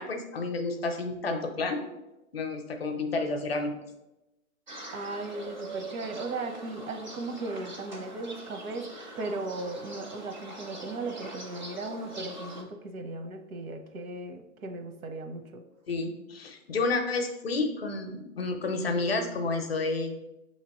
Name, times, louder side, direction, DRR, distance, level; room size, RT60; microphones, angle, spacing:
voice 1, 0.0-1.8 2.3-3.7 15.9-20.2, left 3 dB, 45° left, 6 dB, 0.5 m, -30 dB
sound 1, 4.7-12.6, right 2 dB, 35° right, 0.4 m, -43 dB
voice 2, 4.9-15.6, right 2 dB, 80° right, 6 dB, 0.8 m, -37 dB
6.4 x 2.9 x 2.9 m, 0.97 s
hypercardioid pair, 170°, 42 cm